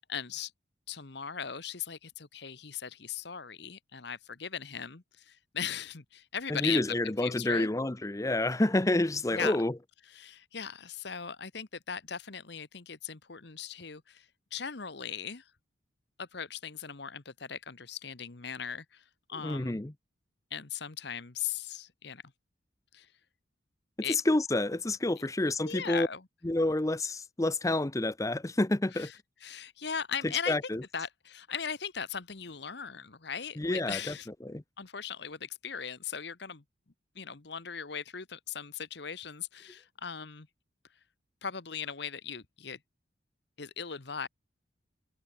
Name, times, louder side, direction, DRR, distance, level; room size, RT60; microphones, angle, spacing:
voice 1, 0.1-0.5 0.9-7.7 9.3-9.5 10.1-15.4 16.2-19.0 19.3-19.8 20.5-22.2 22.9-23.1 24.0-24.2 25.6-26.2 28.9-29.1 29.4-30.6 30.9-34.3 34.8-36.6 37.1-40.5 41.4-42.8 43.6-44.3, left 7 dB, 55° left, 1.2 m, -38 dB
voice 2, 6.5-9.7 19.4-19.9 24.0-26.1 26.4-29.1 30.2-30.8 33.6-34.1 34.4-34.6, left 2 dB, 15° left, 0.5 m, -29 dB
head